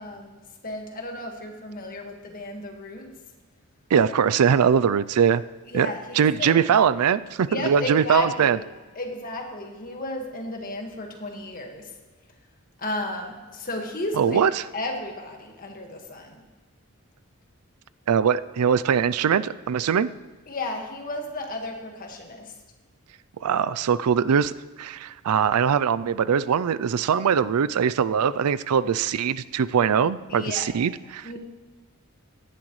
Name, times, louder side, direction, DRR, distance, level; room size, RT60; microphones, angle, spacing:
voice 1, 0.0-3.1 5.7-6.5 7.5-8.6 8.9-11.9 12.8-16.4 20.5-22.5 30.3-30.7 31.2-31.4, left 2 dB, 40° left, 2 dB, 1.7 m, -33 dB
voice 2, 3.9-5.4 5.7-8.6 14.2-14.5 18.1-20.1 23.4-24.5 24.8-31.4, right 7 dB, 90° right, 16 dB, 0.4 m, -22 dB
17.0 x 11.0 x 3.1 m, 1.3 s
head